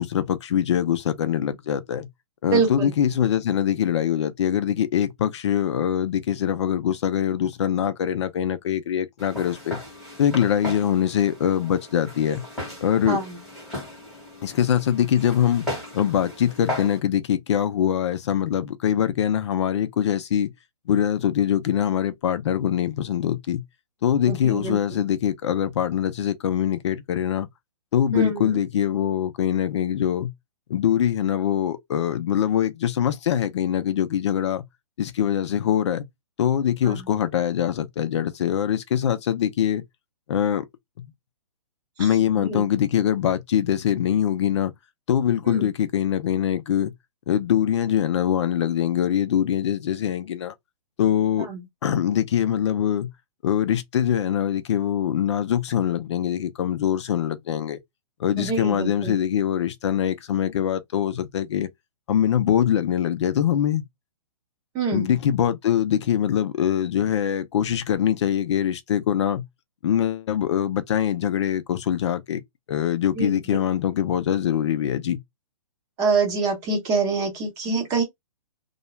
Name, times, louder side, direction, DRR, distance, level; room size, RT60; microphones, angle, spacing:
voice 1, 0.0-2.1 2.4-9.8 10.2-12.4 12.8-13.2 14.4-15.7 15.9-20.5 20.9-23.6 24.0-27.5 27.9-30.3 30.7-34.6 35.0-36.1 36.4-39.8 40.3-40.7 41.0-41.1 42.0-44.7 45.1-46.9 47.3-50.5 51.0-51.5 51.8-53.1 53.4-57.8 58.2-61.7 62.1-63.8 64.9-69.4 69.8-72.4 72.7-75.2, left 9 dB, 50° left, 0.5 m, -23 dB
voice 2, 2.5-2.9 13.1-13.2 24.3-24.8 28.1-28.6 36.8-36.9 42.4-42.6 45.5-45.7 51.5-51.6 58.4-59.2 64.7-65.1 73.2-73.3 76.0-78.0, right 4 dB, 15° right, 0.7 m, -25 dB
Walk footsteps, 9.2-17.0, left 1 dB, ahead, 1.1 m, -36 dB
2.3 x 2.1 x 2.9 m
hypercardioid pair, 165°, 19 cm